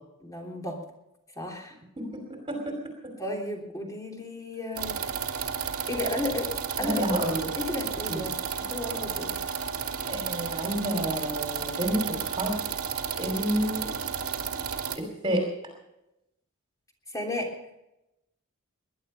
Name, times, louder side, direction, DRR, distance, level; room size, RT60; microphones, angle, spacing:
voice 1, 0.2-0.8 1.3-1.7 3.2-5.0 5.9-6.5 6.8-7.2 7.6-9.3 17.1-17.5, left 2 dB, 15° left, 1 dB, 3.2 m, -33 dB
voice 2, 2.0-3.1 6.8-7.4 8.1-8.2 8.8-8.9 10.1-12.6 13.2-13.9 15.0-15.4, right 1 dB, 25° right, 2 dB, 2.8 m, -30 dB
sound 1, 4.8-15.0, right 7 dB, 80° right, 2.0 m, -32 dB
20.5 x 11.5 x 5.5 m, 0.90 s
head